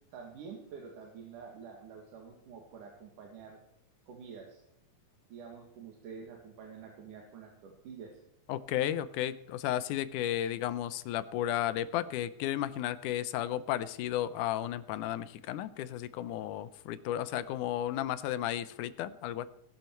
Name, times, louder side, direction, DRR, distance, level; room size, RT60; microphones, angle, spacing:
voice 1, 0.1-3.6 4.1-4.6 5.3-8.2, right 6 dB, 90° right, 1 dB, 3.4 m, -48 dB
voice 2, 8.5-19.5, left 12 dB, 85° left, 14 dB, 2.2 m, -33 dB
19.5 x 12.0 x 4.5 m, 0.75 s
omnidirectional pair, 3.5 m